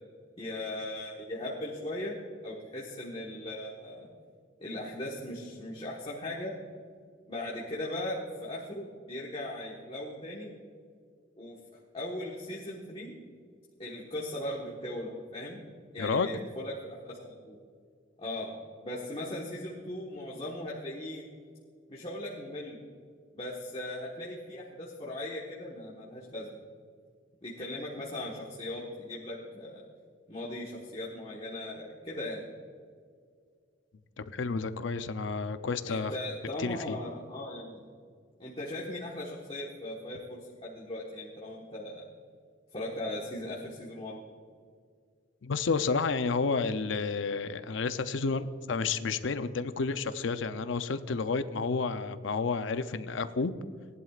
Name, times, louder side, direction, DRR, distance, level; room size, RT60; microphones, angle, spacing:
voice 1, 0.4-2.2 2.4-4.1 4.6-6.5 7.3-10.5 11.4-11.6 11.9-13.2 13.8-15.6 15.9-17.6 18.2-18.5 18.8-21.2 21.9-22.8 23.3-26.5 27.4-29.8 30.3-32.5 35.8-37.8 38.4-42.0 42.7-44.2, left 1 dB, 30° left, -5 dB, 1.4 m, -38 dB
voice 2, 16.0-16.3 34.2-36.1 36.6-37.0 45.4-53.5, left 4 dB, 70° left, 11 dB, 0.6 m, -30 dB
18.0 x 11.0 x 2.4 m, 2.1 s
head